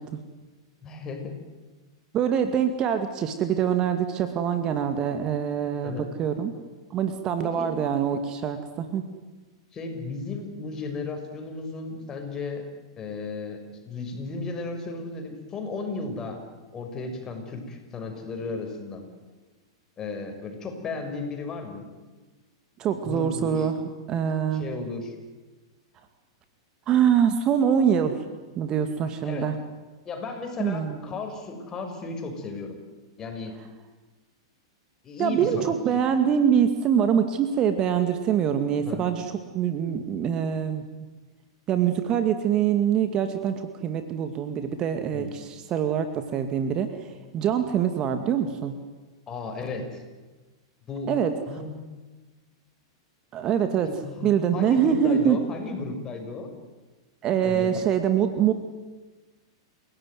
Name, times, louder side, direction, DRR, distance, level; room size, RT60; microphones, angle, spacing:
voice 1, 0.8-1.3 5.8-6.1 7.4-7.7 9.7-12.6 13.0-13.6 13.8-16.4 16.7-19.0 20.0-21.8 23.0-23.7 24.5-25.2 29.2-29.5 30.0-32.8 33.2-33.5 35.0-36.0 38.8-39.1 45.1-45.3 49.3-50.0 50.9-51.1 51.5-51.8 53.9-56.5 57.4-57.8, left 3 dB, 25° left, 4 dB, 6.4 m, -34 dB
voice 2, 2.1-6.5 6.9-9.0 22.8-23.7 24.1-24.6 26.9-28.2 28.6-29.5 30.6-31.0 35.2-40.8 41.7-46.9 47.3-48.7 51.1-51.3 53.3-53.9 54.2-55.4 57.2-58.5, right 8 dB, 30° right, 8 dB, 2.2 m, -24 dB
29.5 x 17.0 x 9.6 m, 1.3 s
figure-of-eight pair, 100°, 2 cm